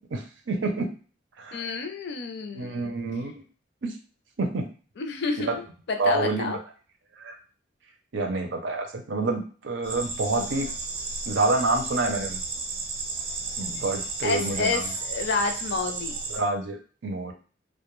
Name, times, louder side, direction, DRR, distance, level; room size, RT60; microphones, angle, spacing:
voice 1, 0.1-0.9 1.4-1.7 2.5-3.3 3.8-3.9 4.4-4.7 5.5-5.6 6.0-6.5 7.2-7.4 8.1-10.7 11.3-12.4 13.6-14.8 16.3-17.3, right 2 dB, 80° right, 3 dB, 0.6 m, -28 dB
voice 2, 1.5-3.0 5.0-6.6 14.2-14.8 15.1-16.2, left 4 dB, 65° left, 5 dB, 0.5 m, -29 dB
sound 1, 9.8-16.4, right 3 dB, 30° right, 0.5 m, -33 dB
2.2 x 2.1 x 3.0 m, 0.39 s
head